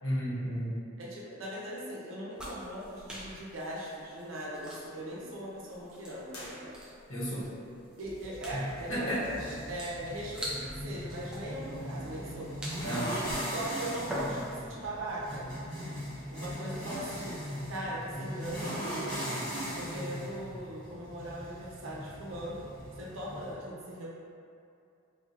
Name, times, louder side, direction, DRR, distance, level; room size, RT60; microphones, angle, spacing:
voice 1, 0.0-0.8 7.1-7.5 8.5-9.3 12.8-13.2, equal, 65° left, -8 dB, 1.0 m, -33 dB
voice 2, 1.0-6.8 8.0-12.5 13.5-15.5 16.3-17.4 17.7-19.4 19.8-22.6 23.0-24.1, right 1 dB, 70° right, -5 dB, 0.7 m, -40 dB
sound 1, 2.3-14.8, equal, 5° right, 0.4 m, -45 dB
sound 2, 6.3-7.3, left 1 dB, 90° left, 0.7 m, -48 dB
sound 3, 8.0-23.5, equal, 20° left, 1.1 m, -39 dB
4.2 x 2.3 x 2.5 m, 2.5 s
head